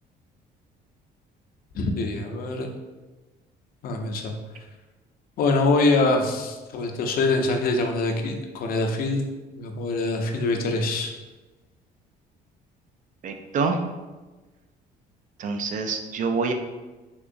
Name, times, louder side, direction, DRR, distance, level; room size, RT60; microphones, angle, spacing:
voice 1, 1.7-2.7 3.8-4.3 5.4-9.2 9.6-11.1, left 2 dB, 60° left, 3 dB, 0.6 m, -24 dB
voice 2, 13.2-13.8 15.4-16.5, right 4 dB, 50° right, 5 dB, 0.4 m, -26 dB
3.6 x 2.9 x 2.6 m, 1.2 s
cardioid pair, 110°, 17 cm